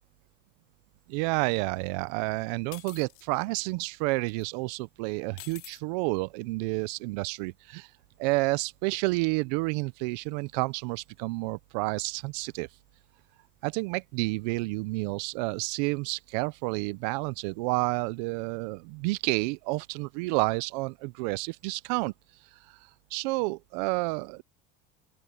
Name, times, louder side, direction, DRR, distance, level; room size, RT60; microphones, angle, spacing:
voice 1, 1.1-7.9 8.2-12.7 13.6-22.1 22.7-22.8 23.1-24.4, right 25 dB, 80° right, 0.6 m, -30 dB
sound 1, 2.7-3.3 4.3-4.4 5.4-5.8, left 24 dB, 85° left, 2.8 m, -46 dB
open air
cardioid pair, 145°, 21 cm